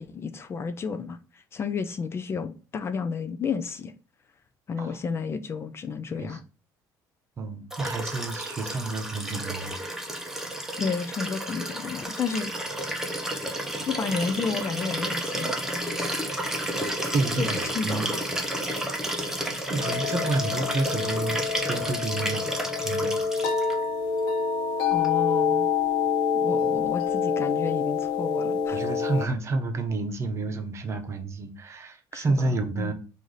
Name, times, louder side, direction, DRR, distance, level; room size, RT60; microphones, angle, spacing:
voice 1, 0.0-3.9 4.7-6.4 10.8-12.5 13.9-15.9 17.0-18.2 24.9-25.7 26.3-28.9 32.1-32.9, left 5 dB, 30° left, 0.4 m, -32 dB
voice 2, 7.4-9.8 16.8-18.1 19.7-23.2 28.7-32.9, right 3 dB, 35° right, 0.8 m, -30 dB
Liquid, 7.7-23.7 25.0-25.1, right 1 dB, 5° right, 0.8 m, -31 dB
sound 1, 19.8-29.3, left 6 dB, 80° left, 0.8 m, -26 dB
4.7 x 2.7 x 3.9 m
cardioid pair, 130°, 8 cm